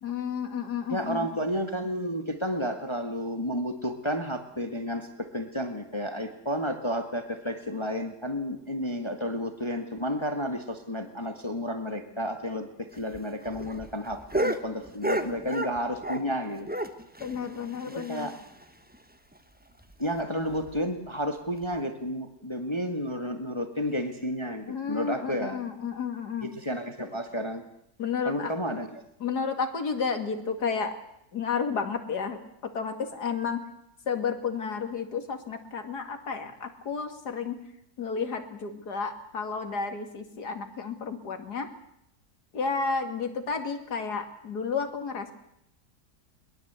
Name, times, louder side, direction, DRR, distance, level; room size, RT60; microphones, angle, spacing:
voice 1, 0.0-1.3 17.2-18.3 24.7-26.5 28.0-28.5 29.2-30.9 31.3-33.6 34.1-37.6 38.0-41.7 42.5-45.3, left 5 dB, 70° left, 7 dB, 2.7 m, -32 dB
voice 2, 0.9-16.7 17.9-18.3 20.0-25.6 26.4-27.6 28.3-29.0, equal, 15° left, 6 dB, 1.7 m, -31 dB
sound 1, 12.9-16.4 16.6-18.6 18.9-19.0 19.3-19.4 19.8-19.9 20.5-20.8 21.6-21.7, right 1 dB, 5° right, 1.1 m, -33 dB
22.5 x 21.0 x 8.2 m, 0.77 s
omnidirectional pair, 1.8 m